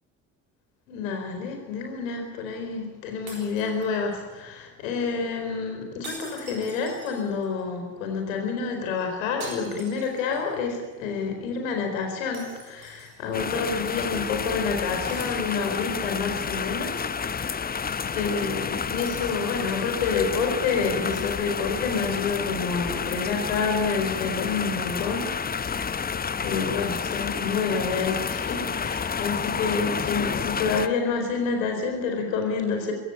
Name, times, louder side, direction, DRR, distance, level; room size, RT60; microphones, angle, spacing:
voice 1, 0.9-17.7 18.1-26.0 26.4-32.9, left 5 dB, 70° left, 4 dB, 4.5 m, -28 dB
sound 1, 3.3-4.3 6.0-7.6 9.4-10.6 10.9-11.0 12.3-13.4 15.1-16.0, right 3 dB, 80° right, 3.8 m, -44 dB
sound 2, 13.3-30.9, left 6 dB, 20° left, 0.9 m, -30 dB
23.5 x 16.0 x 9.9 m, 1.2 s
figure-of-eight pair, 50°, 42 cm